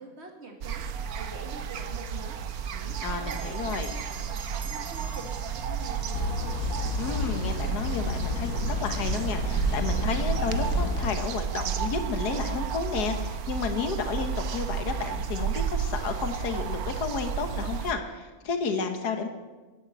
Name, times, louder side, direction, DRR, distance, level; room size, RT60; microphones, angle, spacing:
voice 1, 0.0-6.5, right 3 dB, 45° right, 3 dB, 2.3 m, -45 dB
sound 1, 0.6-17.9, right 6 dB, 70° right, 1.3 m, -32 dB
voice 2, 3.0-3.9 7.0-19.3, left 5 dB, 80° left, 6 dB, 1.8 m, -32 dB
Bell, 3.3-8.1, right 5 dB, 85° right, 2.6 m, -48 dB
sound 2, 6.1-11.2, left 3 dB, 65° left, 1.4 m, -31 dB
11.0 x 11.0 x 8.6 m, 1.3 s
omnidirectional pair, 1.7 m